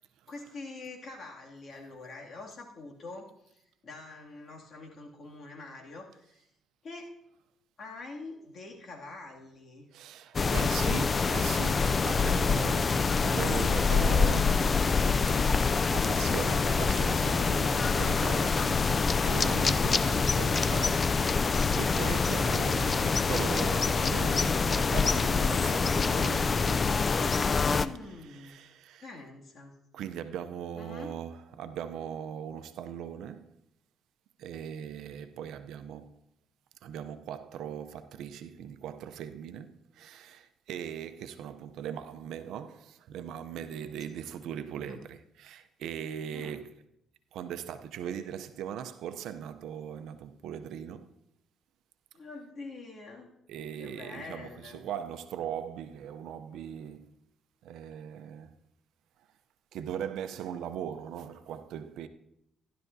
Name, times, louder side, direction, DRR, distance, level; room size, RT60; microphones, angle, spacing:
voice 1, 0.3-6.5 6.8-7.1 7.8-9.9 27.6-28.6 29.0-29.8 30.8-31.1 44.1-44.2 44.7-45.0 46.3-46.7 52.1-53.3 53.8-54.8, left 3 dB, 50° left, 2.3 m, -45 dB
voice 2, 9.9-14.7 15.4-18.9 19.2-26.6 28.3-29.1 29.9-33.5 34.4-36.2 36.8-46.7 47.3-51.1 53.5-57.1 57.6-58.5 59.7-62.1, right 9 dB, 85° right, 0.5 m, -39 dB
sound 1, 10.3-27.9, left 4 dB, 35° left, 0.3 m, -26 dB
14.5 x 11.0 x 2.7 m
cardioid pair, 90°, 0 cm